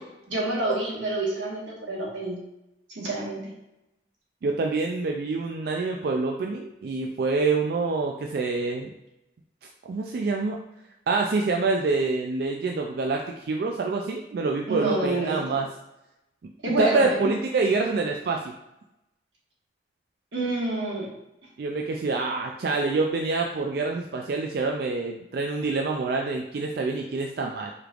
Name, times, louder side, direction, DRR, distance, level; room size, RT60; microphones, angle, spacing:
voice 1, 0.3-2.4 2.9-3.4 14.7-15.6 16.6-17.3 20.3-21.1, right 2 dB, 90° right, -4 dB, 1.4 m, -28 dB
voice 2, 4.4-8.9 9.8-10.6 11.1-15.7 16.8-18.4 21.6-27.7, right 3 dB, 55° right, 1 dB, 0.3 m, -26 dB
4.9 x 3.2 x 2.4 m, 0.90 s
head